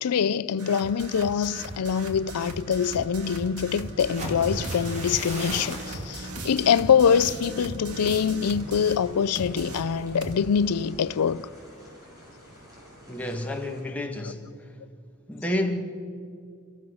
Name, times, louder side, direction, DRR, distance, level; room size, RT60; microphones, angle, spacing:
voice 1, 0.0-11.5, left 7 dB, 90° left, 0.4 m, -24 dB
sound 1, 0.6-9.1 9.4-10.5, right 2 dB, 75° right, 2.2 m, -38 dB
sound 2, 4.0-11.9 12.2-12.5 12.9-13.3, right 1 dB, 30° right, 3.1 m, -39 dB
sound 3, 8.4-13.8, equal, 15° right, 5.8 m, -50 dB
voice 2, 13.1-14.7 15.3-15.8, left 1 dB, 5° left, 1.5 m, -30 dB
29.5 x 14.5 x 6.4 m
head